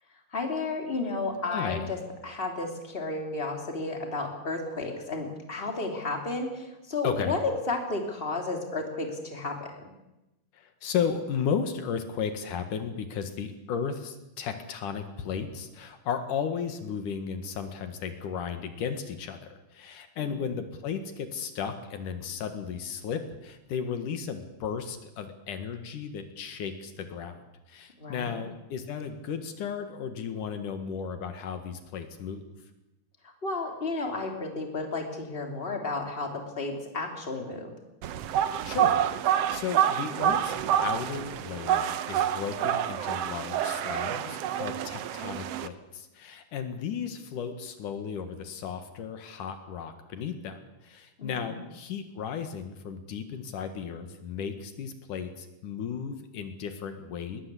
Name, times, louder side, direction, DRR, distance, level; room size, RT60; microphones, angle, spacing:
voice 1, 0.3-7.4 7.7-9.9 20.2-20.5 28.0-28.4 33.2-37.7 51.2-51.6, left 3 dB, 15° left, 3 dB, 3.3 m, -33 dB
voice 2, 1.4-1.8 7.0-7.3 10.5-32.4 38.6-40.5 40.8-57.4, left 7 dB, 80° left, 8 dB, 3.3 m, -34 dB
sound 1, 38.0-45.7, right 10 dB, 65° right, 1.7 m, -28 dB
20.5 x 20.0 x 8.4 m, 0.96 s
omnidirectional pair, 3.6 m